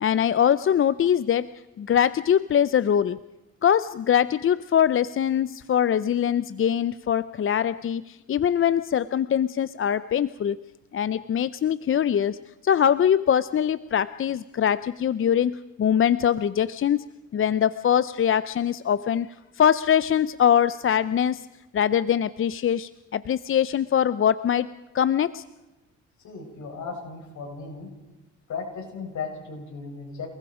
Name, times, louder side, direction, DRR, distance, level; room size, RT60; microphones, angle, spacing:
voice 1, 0.0-1.5 1.8-3.2 3.6-10.6 10.9-12.4 12.6-17.0 17.3-19.3 19.6-21.5 21.7-24.7 24.9-25.4, left 9 dB, 45° left, 15 dB, 0.6 m, -22 dB
voice 2, 26.2-27.9 28.5-30.3, left 5 dB, 70° left, 1 dB, 7.6 m, -36 dB
28.5 x 20.5 x 5.0 m, 0.99 s
cardioid pair, 90°, 30 cm